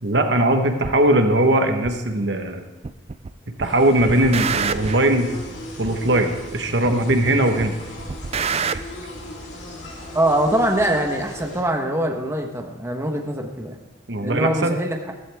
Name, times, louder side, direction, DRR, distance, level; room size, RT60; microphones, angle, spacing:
voice 1, 0.0-2.6 3.5-5.3 5.8-7.7 8.7-8.8 14.1-14.8, right 1 dB, 65° right, 6 dB, 1.2 m, -20 dB
sound 1, 0.8-1.0 1.8-1.9 2.8-3.3 3.6-5.1 5.8-5.9 6.8-7.3 7.6-8.8, right 6 dB, 35° right, 0.4 m, -27 dB
sound 2, 3.6-11.6, equal, 70° left, 3.3 m, -36 dB
voice 2, 10.1-13.8 14.2-15.1, right 1 dB, 15° right, 2 dB, 1.1 m, -23 dB
14.5 x 14.5 x 3.5 m, 1.0 s
head